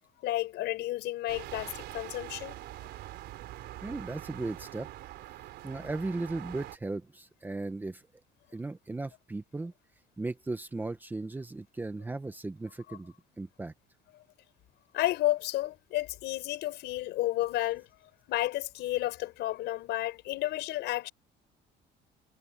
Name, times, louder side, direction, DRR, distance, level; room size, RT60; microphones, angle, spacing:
voice 1, 0.2-2.6 14.9-17.9 18.3-21.1, left 15 dB, 65° left, 5.3 m, -31 dB
sound 1, 1.3-6.8, right 15 dB, 60° right, 3.8 m, -44 dB
voice 2, 3.8-4.9 5.6-8.0 8.5-9.7 10.2-13.7, right 2 dB, 10° right, 1.0 m, -36 dB
cardioid pair, 165°, 19 cm